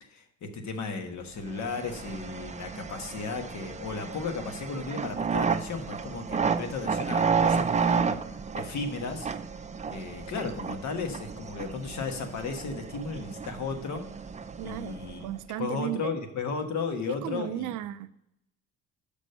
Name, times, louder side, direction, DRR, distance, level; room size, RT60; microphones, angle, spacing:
voice 1, 0.0-9.3 9.9-14.1 14.6-15.3 15.6-17.7, left 4 dB, 65° left, 1.4 m, -35 dB
sound 1, 1.5-15.4, right 5 dB, 25° right, 0.5 m, -32 dB
voice 2, 14.6-16.2 17.1-18.1, right 13 dB, 90° right, 0.5 m, -35 dB
6.2 x 5.3 x 6.6 m
cardioid pair, 90°, 30 cm